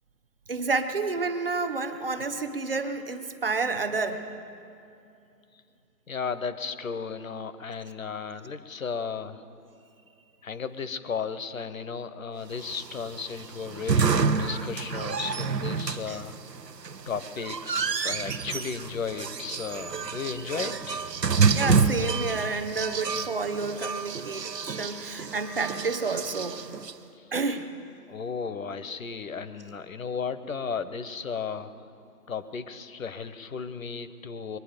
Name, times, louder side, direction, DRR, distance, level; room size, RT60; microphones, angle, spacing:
voice 1, 0.5-4.3 16.1-16.2 20.5-20.8 21.5-26.6 27.3-27.7, right 4 dB, 35° right, 9 dB, 0.8 m, -30 dB
voice 2, 6.1-9.4 10.4-16.3 17.1-21.0 27.1-27.3 28.1-31.7 32.3-34.6, left 5 dB, 55° left, 12 dB, 0.9 m, -34 dB
sound 1, 12.6-26.9, right 5 dB, 85° right, 1.0 m, -29 dB
23.0 x 9.6 x 5.2 m, 2.6 s
figure-of-eight pair, 155°, 48 cm